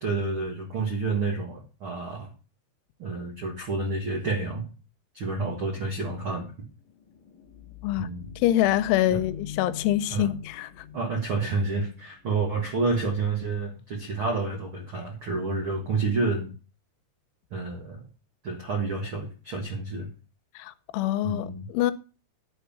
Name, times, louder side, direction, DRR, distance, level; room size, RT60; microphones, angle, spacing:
voice 1, 0.0-2.3 3.0-4.7 5.1-6.5 8.0-8.2 9.1-9.2 10.1-10.3 10.9-16.5 17.5-18.1 18.4-20.1 21.2-21.7, right 3 dB, 75° right, 1.2 m, -29 dB
sound 1, 6.8-12.3, left 7 dB, 65° left, 2.5 m, -43 dB
voice 2, 8.4-10.9 20.6-21.9, left 13 dB, 85° left, 3.1 m, -25 dB
10.5 x 4.7 x 7.0 m
omnidirectional pair, 5.4 m